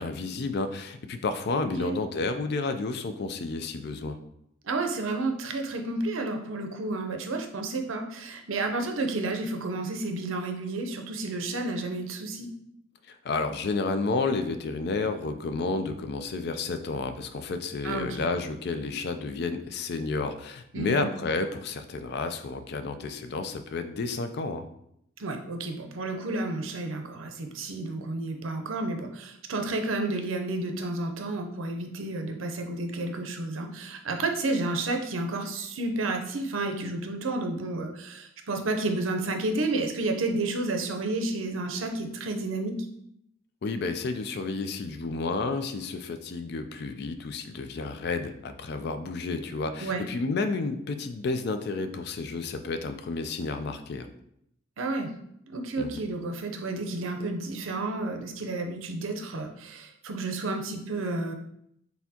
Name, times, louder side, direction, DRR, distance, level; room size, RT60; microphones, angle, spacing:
voice 1, 0.0-4.2 13.1-24.6 43.6-54.1 55.8-56.0, left 3 dB, 55° left, 8 dB, 0.4 m, -31 dB
voice 2, 1.5-1.9 4.6-12.5 17.8-18.2 20.7-21.0 25.2-42.8 49.8-50.1 54.8-55.1 55.5-61.3, right 2 dB, 75° right, 4 dB, 0.6 m, -31 dB
4.3 x 3.4 x 2.8 m, 0.74 s
head